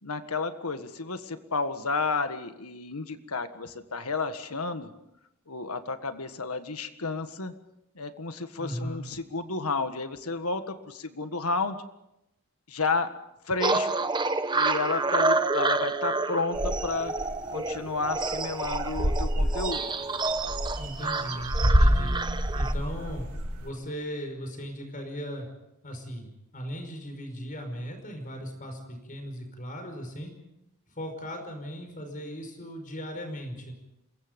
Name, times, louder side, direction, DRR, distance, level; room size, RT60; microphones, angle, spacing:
voice 1, 0.0-4.9 5.5-7.5 7.9-11.8 12.7-13.1 13.4-13.9 14.5-17.1 17.5-19.9, left 3 dB, 85° left, 9 dB, 1.7 m, -31 dB
voice 2, 8.6-9.0 20.8-22.1 22.5-23.3 23.6-25.5 25.8-30.3 30.9-33.7, equal, 40° left, 5 dB, 5.3 m, -37 dB
sound 1, 13.6-22.7, right 3 dB, 20° right, 0.9 m, -29 dB
sound 2, 16.5-17.3 17.7-17.8 18.1-18.3 18.6-23.6, equal, 85° right, 4.4 m, -27 dB
27.5 x 22.5 x 5.4 m, 0.86 s
head